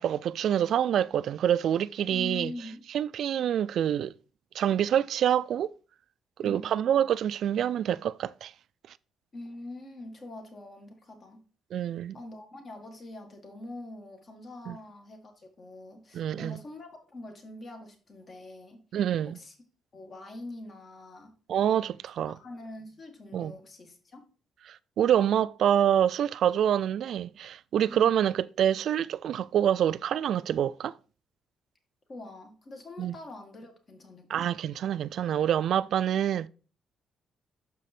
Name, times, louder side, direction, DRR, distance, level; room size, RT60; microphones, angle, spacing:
voice 1, 0.0-2.5 2.9-4.1 4.5-5.7 6.4-8.5 11.7-12.2 14.7-14.8 16.1-16.6 18.9-19.4 21.5-22.4 23.3-23.5 24.7-30.9 33.0-33.2 34.3-36.5, right 10 dB, 70° right, 0.3 m, -26 dB
voice 2, 2.1-2.9 6.4-6.9 9.3-11.4 12.1-18.8 19.3-19.5 19.9-21.3 22.3-24.2 27.9-28.3 32.1-34.4, left 2 dB, 40° left, 1.7 m, -44 dB
6.7 x 4.9 x 4.3 m
cardioid pair, 90°, 0 cm